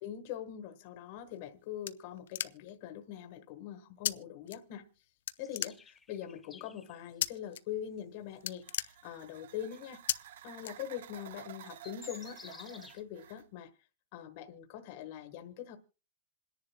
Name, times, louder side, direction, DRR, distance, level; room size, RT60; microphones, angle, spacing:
voice 1, 0.0-4.9 5.4-10.0 10.4-13.7 14.1-15.8, left 10 dB, 45° left, 1.3 m, -43 dB
sound 1, 1.2-2.9 4.0-4.1 4.5-5.0 5.3-6.2 7.2-7.6 7.9-8.1 8.3-9.5 10.1-10.2 10.6-11.3, left 11 dB, 80° left, 0.5 m, -36 dB
sound 2, 5.4-7.4 8.0-8.1 8.6-8.8 9.7-9.8 11.2-11.3 11.6-13.0, left 5 dB, 10° left, 0.6 m, -53 dB
sound 3, 8.2-13.5, right 11 dB, 70° right, 0.5 m, -52 dB
27.5 x 10.5 x 2.2 m
supercardioid pair, 165°, 0 cm